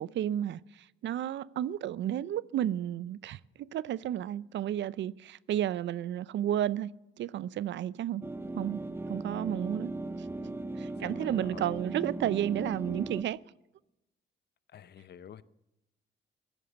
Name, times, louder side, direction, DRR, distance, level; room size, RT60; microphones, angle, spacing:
voice 1, 0.0-8.2 8.5-9.9 10.8-13.4, right 11 dB, 65° right, 0.5 m, -32 dB
sound 1, 8.2-13.2, right 2 dB, 10° right, 0.8 m, -37 dB
voice 2, 11.0-11.8 14.7-15.4, left 9 dB, 55° left, 0.8 m, -49 dB
15.5 x 11.5 x 8.0 m
cardioid pair, 90°, 20 cm